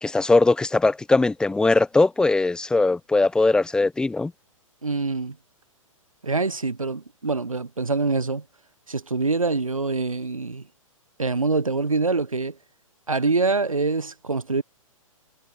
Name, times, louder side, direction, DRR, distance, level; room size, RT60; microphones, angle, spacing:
voice 1, 0.0-4.3, left 3 dB, 5° left, 1.4 m, -20 dB
voice 2, 4.8-5.4 6.2-8.4 8.9-10.7 11.2-12.6 13.1-14.6, right 3 dB, 75° right, 7.8 m, -25 dB
figure-of-eight pair, 115°, 18 cm